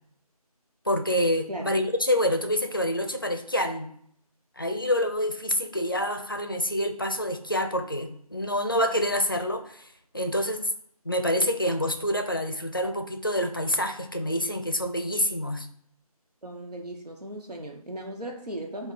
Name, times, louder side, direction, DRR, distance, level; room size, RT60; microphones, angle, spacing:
voice 1, 0.9-3.9 4.6-9.9 10.1-10.7 11.0-15.7, left 1 dB, 35° left, 6 dB, 0.5 m, -27 dB
voice 2, 16.4-18.9, right 1 dB, 85° right, 1 dB, 1.1 m, -37 dB
5.3 x 2.3 x 4.1 m, 0.66 s
figure-of-eight pair, 165°, 20 cm